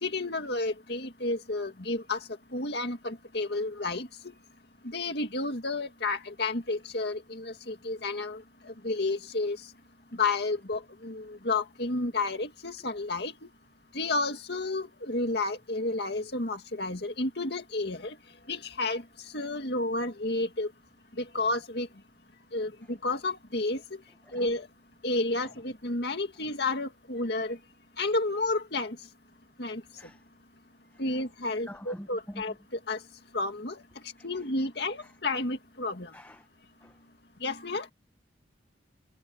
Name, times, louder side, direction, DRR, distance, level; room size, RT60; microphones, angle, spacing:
voice 1, 0.0-2.2 2.5-4.1 4.9-8.4 8.8-9.6 10.2-13.3 13.9-18.1 18.5-19.0 19.3-20.7 21.3-21.9 22.5-22.7 23.0-23.8 24.3-24.7 25.0-27.6 28.0-29.0 29.6-29.8 31.0-32.5 32.9-33.0 33.3-33.8 34.2-36.1 37.4-37.8, left 2 dB, 60° left, 2.2 m, -31 dB
voice 2, 31.7-32.4 34.2-34.3 35.0-35.1 36.1-36.4 36.8-36.9, equal, 10° left, 1.0 m, -45 dB
head